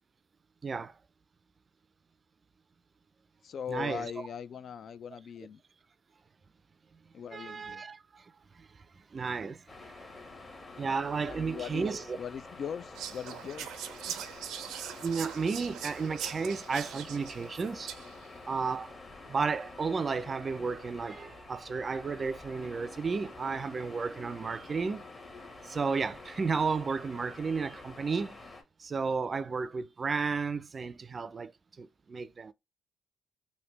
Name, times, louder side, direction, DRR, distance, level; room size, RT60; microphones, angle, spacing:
voice 1, 0.6-1.0 3.7-4.1 7.3-10.1 10.8-12.2 15.0-17.9 18.5-19.0 19.3-25.0 25.4-28.5 28.8-31.5 31.8-32.5, right 5 dB, 35° right, 0.4 m, -33 dB
voice 2, 3.4-5.6 7.1-7.8 11.2-11.9 12.2-13.8, left 7 dB, 55° left, 0.4 m, -40 dB
sound 1, 9.7-28.6, left 3 dB, 30° left, 1.1 m, -48 dB
Whispering, 12.9-18.3, right 9 dB, 85° right, 0.5 m, -41 dB
3.3 x 2.7 x 3.1 m
cardioid pair, 90°, 0 cm